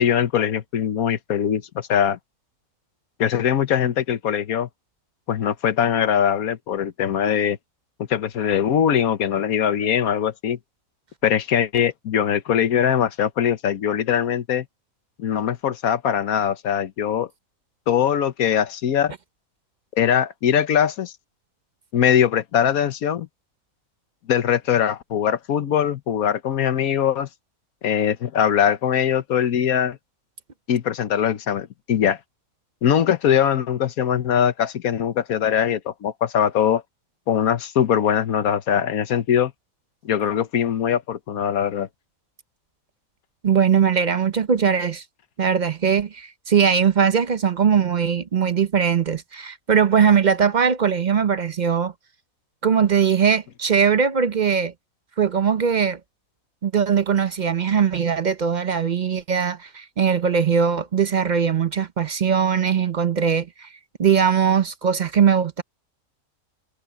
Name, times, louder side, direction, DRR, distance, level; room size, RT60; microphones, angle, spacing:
voice 1, 0.0-2.2 3.2-4.7 5.3-7.6 8.1-10.6 11.2-14.6 15.2-17.3 17.9-19.1 20.0-21.1 21.9-23.3 24.3-27.3 27.8-30.0 30.7-32.2 32.8-36.8 37.3-39.5 40.0-41.9, left 9 dB, 90° left, 1.4 m, -21 dB
voice 2, 43.4-45.0 45.4-51.9 52.6-54.7 55.2-56.0 56.6-63.7 64.0-65.6, right 7 dB, 45° right, 0.6 m, -20 dB
omnidirectional pair, 1.5 m